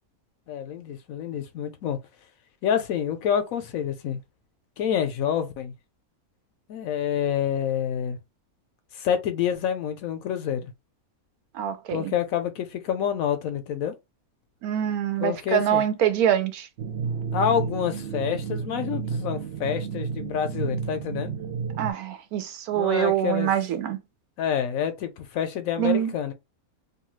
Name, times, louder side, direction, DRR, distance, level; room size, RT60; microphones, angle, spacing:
voice 1, 0.5-2.0 2.6-4.2 4.8-5.7 6.7-8.2 8.9-10.7 11.9-13.9 15.2-15.8 17.3-21.3 22.7-23.5 24.4-26.3, left 9 dB, 75° left, 1.0 m, -27 dB
voice 2, 11.5-12.1 14.6-16.7 21.8-24.0 25.8-26.1, right 10 dB, 85° right, 1.1 m, -25 dB
sound 1, 16.8-21.9, right 6 dB, 65° right, 0.6 m, -31 dB
2.8 x 2.3 x 3.0 m
omnidirectional pair, 1.6 m